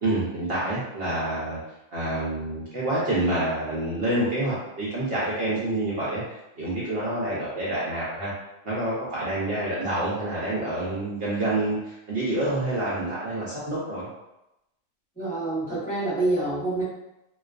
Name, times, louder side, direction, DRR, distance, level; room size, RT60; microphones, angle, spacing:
voice 1, 0.0-1.6 1.9-8.3 8.6-14.1, right 1 dB, 60° right, -8 dB, 0.7 m, -27 dB
voice 2, 15.2-16.8, right 2 dB, 5° left, -10 dB, 0.8 m, -26 dB
2.3 x 2.3 x 2.3 m, 0.90 s
omnidirectional pair, 1.3 m